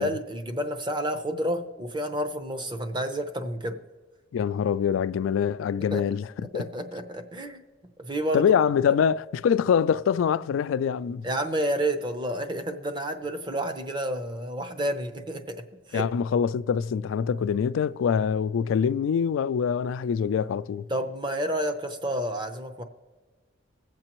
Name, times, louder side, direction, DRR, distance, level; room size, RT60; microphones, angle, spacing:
voice 1, 0.0-3.8 5.9-6.0 6.5-7.6 8.0-8.5 11.2-16.1 20.9-22.8, equal, 25° right, 0.7 m, -30 dB
voice 2, 4.3-6.6 8.3-11.3 15.9-20.9, left 7 dB, 85° left, 0.3 m, -24 dB
21.5 x 7.6 x 3.0 m
head